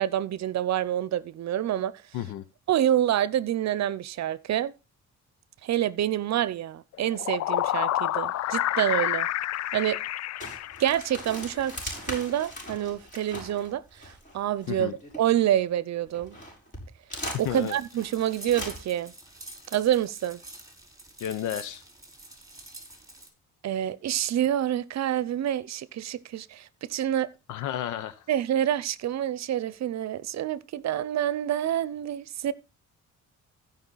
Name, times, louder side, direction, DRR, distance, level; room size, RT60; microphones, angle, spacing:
voice 1, 0.0-1.9 2.7-4.7 5.6-9.3 9.7-10.0 10.8-16.4 17.4-19.1 19.7-20.4 23.6-27.3 28.3-32.5, right 11 dB, 65° right, 0.8 m, -27 dB
sound 1, 6.9-11.4, left 14 dB, 60° left, 0.4 m, -29 dB
sound 2, 10.4-15.6 16.1-19.1, left 1 dB, 25° left, 6.8 m, -40 dB
sound 3, 17.3-23.3, right 2 dB, 10° right, 4.1 m, -47 dB
voice 2, 17.4-17.8 21.2-21.8 27.5-28.3, left 11 dB, 90° left, 0.9 m, -32 dB
15.0 x 5.4 x 4.0 m
cardioid pair, 90°, 30 cm